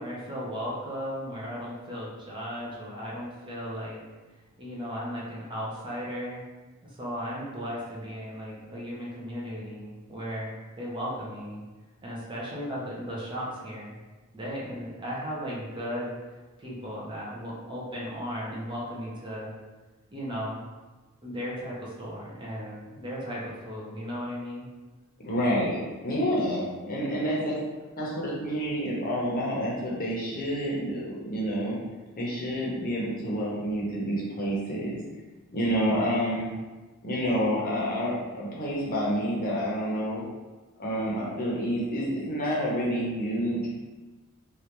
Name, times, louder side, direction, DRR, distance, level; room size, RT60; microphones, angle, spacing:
voice 1, 0.0-4.0 4.6-6.4 6.8-11.6 12.0-13.9 14.3-16.1 16.6-19.5 20.1-20.6 21.2-24.7, equal, 20° right, -5 dB, 0.6 m, -36 dB
voice 2, 25.2-27.6 28.0-31.8 32.2-35.0 35.5-36.5 37.0-40.2 40.8-43.7, equal, 40° left, -5 dB, 0.8 m, -28 dB
3.2 x 2.4 x 2.9 m, 1.2 s
head